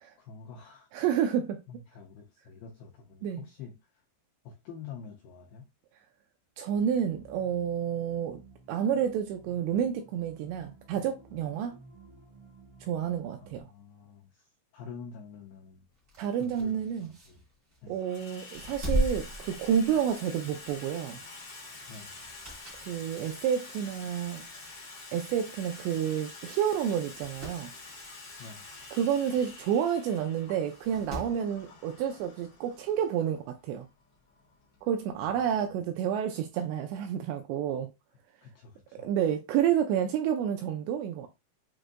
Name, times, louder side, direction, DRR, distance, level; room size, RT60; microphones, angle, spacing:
voice 1, 0.2-0.9 1.7-3.8 4.4-5.7 13.4-14.5 14.7-15.9 16.4-17.4 17.8-18.0 21.9-22.1 28.4-28.7 35.3-35.9 38.4-39.1, left 6 dB, 90° left, 2.2 m, -47 dB
voice 2, 0.9-1.6 3.2-3.4 6.6-8.4 8.7-11.8 12.8-13.7 16.2-17.1 17.9-21.2 22.9-24.4 25.1-27.7 28.9-33.9 34.8-37.9 39.0-41.3, right 9 dB, 85° right, 2.5 m, -29 dB
sound 1, 6.7-13.6, right 3 dB, 35° right, 0.4 m, -55 dB
sound 2, 15.9-17.9 18.4-20.3 20.6-20.8 22.1-22.9 23.4-23.5 24.4-24.5 24.7-24.8 25.0-25.1 26.0-26.2 26.5-26.6 27.0-27.6 29.5-29.6 30.6-31.4 32.7-32.8, equal, 60° right, 0.8 m, -36 dB
Water tap faucet / Sink (filling or washing), 16.0-16.1 17.1-17.5 17.8-35.4, left 3 dB, 65° left, 1.1 m, -48 dB
7.7 x 2.6 x 2.5 m
omnidirectional pair, 5.3 m